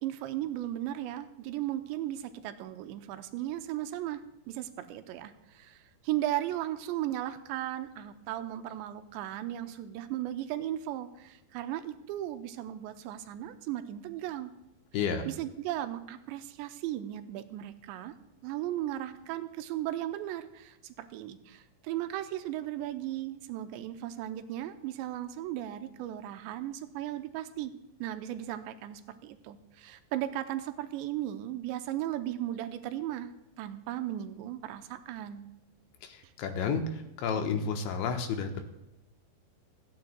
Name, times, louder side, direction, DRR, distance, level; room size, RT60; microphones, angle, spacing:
voice 1, 0.0-4.2 4.5-14.5 14.9-18.1 18.4-27.7 28.0-33.3 33.6-35.5 36.2-36.3, right 13 dB, 80° right, 9 dB, 2.7 m, -36 dB
voice 2, 14.9-15.3 36.0-38.6, left 5 dB, 80° left, 5 dB, 3.2 m, -31 dB
27.5 x 9.6 x 2.3 m, 0.93 s
omnidirectional pair, 5.4 m